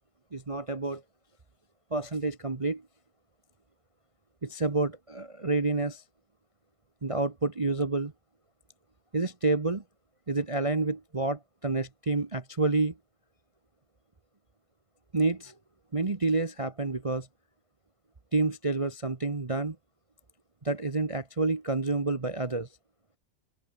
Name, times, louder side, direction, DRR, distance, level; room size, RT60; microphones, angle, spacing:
voice 1, 0.3-1.0 1.9-2.8 4.4-6.0 7.0-8.1 9.1-9.8 10.3-12.9 15.1-15.5 15.9-17.3 18.3-19.8 20.6-22.7, right 3 dB, 25° right, 0.9 m, -29 dB
open air
omnidirectional pair, 1.9 m